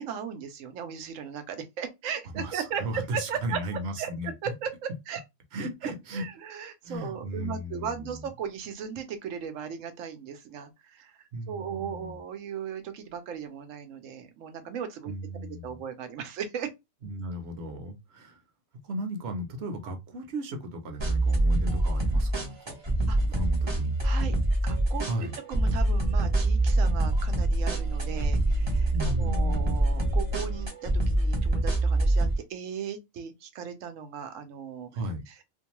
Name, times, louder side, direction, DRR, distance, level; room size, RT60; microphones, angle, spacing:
voice 1, 0.0-3.6 4.0-4.1 4.4-5.2 6.1-11.2 11.5-15.1 15.5-16.7 23.1-23.2 24.0-24.3 24.6-34.9 35.3-35.4, right 7 dB, 90° right, 1.0 m, -37 dB
voice 2, 2.3-4.5 5.5-6.3 6.8-8.3 11.3-12.1 15.1-15.8 17.0-18.4 18.8-22.8 23.2-23.9 25.0-25.4 28.9-29.7 34.9-35.2, equal, 60° right, 0.9 m, -35 dB
sound 1, 21.0-32.3, right 1 dB, 30° right, 0.6 m, -25 dB
sound 2, 25.6-30.7, right 3 dB, 40° left, 0.8 m, -32 dB
2.5 x 2.2 x 2.9 m
omnidirectional pair, 1.3 m